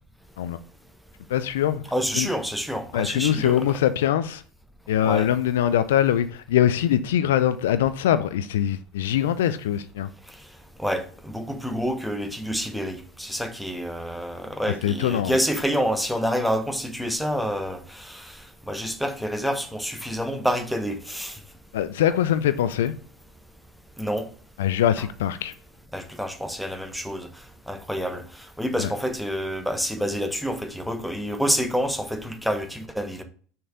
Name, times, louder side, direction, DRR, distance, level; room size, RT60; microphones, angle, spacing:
voice 1, 1.3-1.8 2.1-2.3 2.9-4.4 4.9-10.1 14.8-15.4 21.7-23.0 24.6-25.5 28.8-28.9, left 10 dB, 70° left, 0.5 m, -23 dB
voice 2, 1.9-3.7 5.0-5.3 10.8-18.4 18.7-21.4 24.0-24.3 25.9-27.3 27.7-33.2, equal, ahead, 1.2 m, -28 dB
6.6 x 4.4 x 5.0 m
figure-of-eight pair, 75°, 0 cm